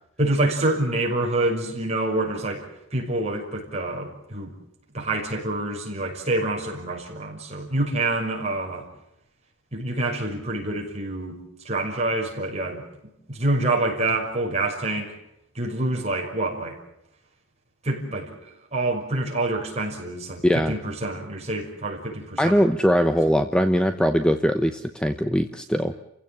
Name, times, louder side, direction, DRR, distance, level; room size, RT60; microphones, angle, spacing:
voice 1, 0.2-4.5 4.9-8.9 9.7-11.4 11.6-12.8 13.3-15.1 15.5-16.8 17.8-22.6, right 2 dB, 30° right, -1 dB, 6.2 m, -27 dB
voice 2, 20.4-20.7 22.4-25.9, equal, 5° left, 8 dB, 0.8 m, -21 dB
30.0 x 16.5 x 8.9 m, 0.86 s
head